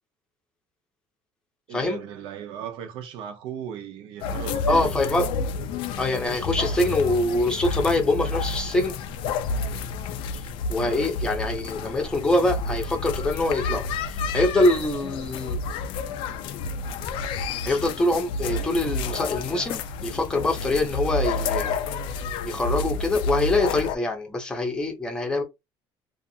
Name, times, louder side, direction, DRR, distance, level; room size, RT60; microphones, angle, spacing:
voice 1, 1.7-5.0 10.8-11.0, right 9 dB, 70° right, 0.6 m, -37 dB
sound 1, 4.2-24.0, left 3 dB, 65° left, 0.4 m, -30 dB
voice 2, 4.7-5.3 6.0-8.9 10.3-10.4 10.7-13.8 14.1-15.6 17.6-21.8 22.4-25.4, left 2 dB, 10° left, 0.7 m, -24 dB
2.5 x 2.3 x 2.6 m
cardioid pair, 150°, 9 cm